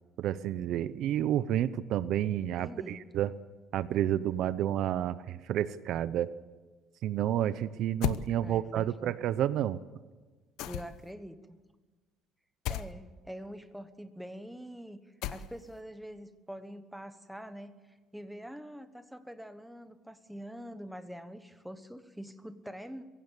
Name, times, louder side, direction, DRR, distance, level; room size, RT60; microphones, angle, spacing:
voice 1, 0.2-3.3 3.7-6.3 7.0-9.8, right 11 dB, 60° right, 15 dB, 0.7 m, -30 dB
voice 2, 2.6-3.0 8.4-9.1 10.7-11.6 12.7-15.0 15.3-23.0, equal, ahead, 9 dB, 1.1 m, -45 dB
sound 1, 8.0-8.3 10.6-11.1 12.6-12.9 15.2-15.7, left 12 dB, 75° left, 0.9 m, -33 dB
23.0 x 16.5 x 8.2 m, 1.3 s
cardioid pair, 155°, 0 cm